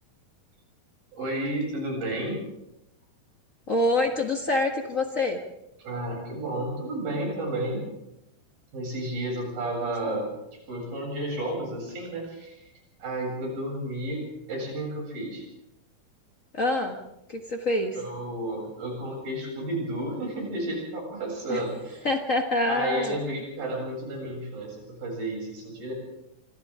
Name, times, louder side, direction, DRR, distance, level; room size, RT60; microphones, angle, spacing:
voice 1, 1.1-2.4 5.8-7.8 8.7-10.3 10.7-12.6 13.0-14.2 14.5-15.5 17.9-22.0 22.7-25.9, right 1 dB, 80° right, -1 dB, 9.8 m, -32 dB
voice 2, 3.7-5.4 10.0-10.2 16.5-17.0 17.3-18.0 21.5-21.6 22.0-23.2, left 2 dB, 50° left, 3 dB, 0.9 m, -26 dB
27.5 x 25.5 x 3.8 m, 0.88 s
omnidirectional pair, 4.0 m